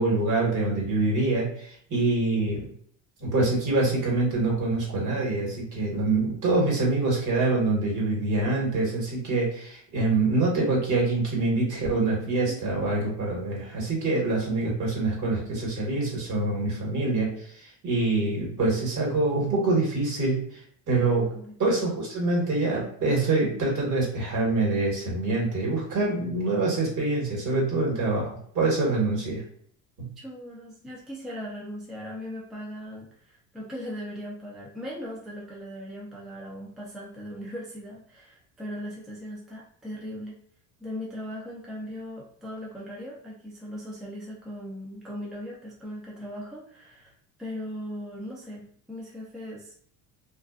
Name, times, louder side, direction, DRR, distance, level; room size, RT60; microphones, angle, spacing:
voice 1, 0.0-2.7 3.2-20.6 20.9-21.3 21.6-29.4 30.0-30.1, right 2 dB, 50° right, -2 dB, 1.3 m, -25 dB
voice 2, 20.9-21.9 30.2-40.3 40.8-47.1 47.4-49.7, equal, ahead, -4 dB, 0.4 m, -39 dB
2.5 x 2.2 x 2.3 m, 0.62 s
cardioid pair, 120°, 37 cm